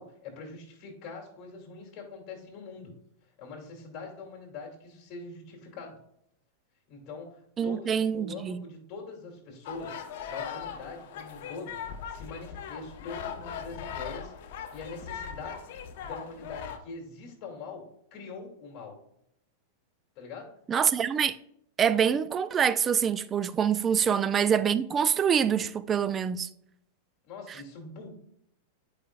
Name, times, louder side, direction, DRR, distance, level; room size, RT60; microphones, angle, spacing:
voice 1, 0.0-2.9 3.4-6.0 6.9-11.8 12.1-17.8 18.1-19.0 20.2-20.5 24.0-24.2 27.2-28.1, left 4 dB, 40° left, 2.4 m, -43 dB
voice 2, 7.6-8.6 20.7-21.4 21.8-26.5, right 7 dB, 25° right, 0.3 m, -25 dB
sound 1, 9.7-16.8, left 7 dB, 65° left, 0.8 m, -39 dB
8.3 x 4.9 x 2.3 m
supercardioid pair, 135°, 0 cm